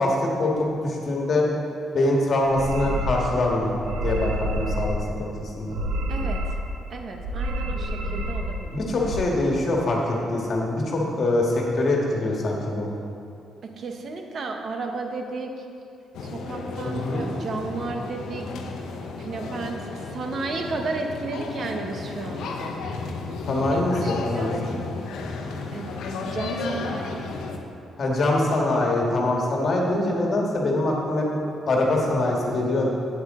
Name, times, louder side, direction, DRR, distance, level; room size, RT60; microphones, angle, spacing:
voice 1, 0.0-1.5 1.9-3.7 4.0-5.8 8.7-12.9 16.8-17.2 23.5-24.8 28.0-31.3 31.7-32.9, left 2 dB, 50° left, -1 dB, 1.6 m, -24 dB
sound 1, 2.5-3.3 3.7-5.0 5.6-6.7 7.2-8.6 8.9-9.2, right 1 dB, 85° right, 1.0 m, -28 dB
voice 2, 6.9-8.8 13.6-15.6 16.2-18.5 19.2-22.8 23.7-24.5 25.7-25.9 26.2-27.3, right 3 dB, 55° right, 4 dB, 0.9 m, -33 dB
sound 2, 16.1-27.6, left 3 dB, 80° left, 0.8 m, -33 dB
8.6 x 8.2 x 3.7 m, 2.6 s
cardioid pair, 90°, 0 cm